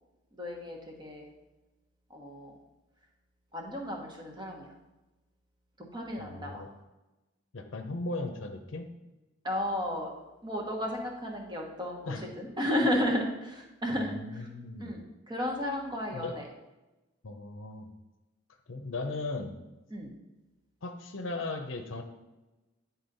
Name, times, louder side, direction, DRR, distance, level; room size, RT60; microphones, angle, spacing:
voice 1, 0.4-1.2 2.1-2.5 3.5-4.7 5.9-6.6 9.4-10.1 10.4-14.1 14.8-15.0 15.3-16.4 19.9-20.1, left 1 dB, 25° right, 0 dB, 1.3 m, -33 dB
voice 2, 6.2-6.7 7.5-8.9 12.1-12.3 13.9-14.9 16.1-16.4 17.2-17.9 18.7-19.6 20.8-22.0, left 2 dB, 70° left, 4 dB, 0.7 m, -37 dB
9.6 x 4.0 x 4.1 m, 1.1 s
head